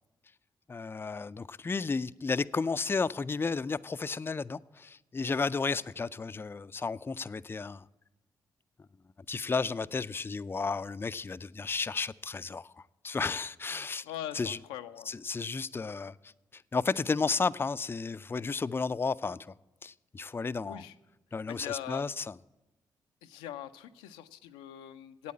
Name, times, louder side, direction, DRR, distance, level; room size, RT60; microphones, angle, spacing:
voice 1, 0.7-7.9 9.3-12.7 13.0-14.0 14.3-14.6 15.1-19.5 19.8-20.8 21.3-22.4, left 4 dB, 25° left, 0.3 m, -33 dB
voice 2, 14.0-15.1 20.7-20.9 21.5-22.0 23.2-25.3, left 11 dB, 90° left, 0.4 m, -42 dB
8.4 x 8.4 x 8.4 m
hypercardioid pair, 45°, 9 cm